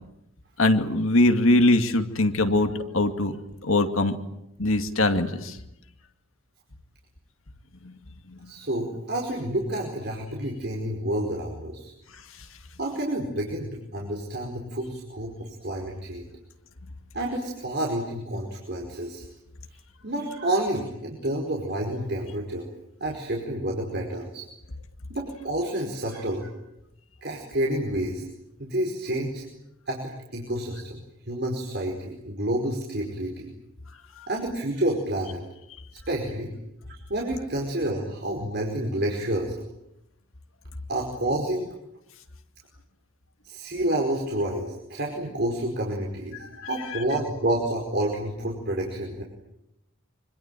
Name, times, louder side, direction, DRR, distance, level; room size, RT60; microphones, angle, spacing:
voice 1, 0.6-3.4 3.6-4.2 4.6-5.6 7.8-7.9 46.6-46.7, left 2 dB, 75° left, 7 dB, 2.3 m, -22 dB
voice 2, 8.4-11.9 12.8-16.3 17.1-19.2 20.0-22.7 23.0-24.4 25.1-26.5 27.2-28.2 28.6-29.5 29.9-31.0 31.3-33.5 34.3-35.4 36.1-36.5 36.9-39.5 40.9-41.7 43.4-49.2, right 1 dB, 50° right, -1 dB, 5.0 m, -29 dB
25.5 x 25.5 x 9.1 m, 0.85 s
head